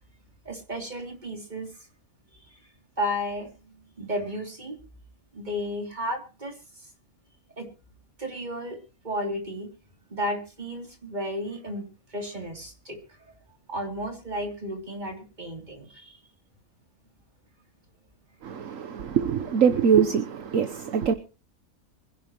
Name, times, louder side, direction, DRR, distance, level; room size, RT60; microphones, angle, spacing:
voice 1, 0.4-1.9 2.5-2.6 3.0-4.8 5.3-6.9 7.6-7.7 8.2-8.8 9.0-9.7 10.1-13.2 13.7-16.2, equal, 30° right, 3.3 m, -33 dB
voice 2, 18.4-21.1, right 7 dB, 65° right, 1.3 m, -23 dB
24.5 x 11.0 x 3.1 m
omnidirectional pair, 1.5 m